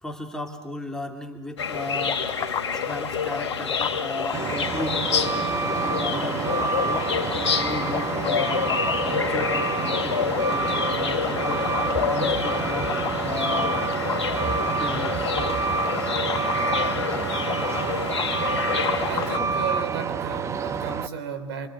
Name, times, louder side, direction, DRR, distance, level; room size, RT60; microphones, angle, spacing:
voice 1, 0.0-2.3 2.7-5.0 5.8-7.1 7.5-8.7 9.1-11.7 12.0-13.9 14.6-15.3 17.3-17.4, left 2 dB, 5° left, 3 dB, 2.7 m, -35 dB
sound 1, 1.6-19.4, left 6 dB, 90° left, 2.5 m, -28 dB
sound 2, 2.0-19.5, left 8 dB, 25° left, 1.5 m, -34 dB
Truck, 4.3-21.1, right 5 dB, 20° right, 0.9 m, -28 dB
voice 2, 19.1-21.7, right 7 dB, 65° right, 11 dB, 3.6 m, -34 dB
27.5 x 24.5 x 8.1 m, 1.3 s
hypercardioid pair, 110°, 14 cm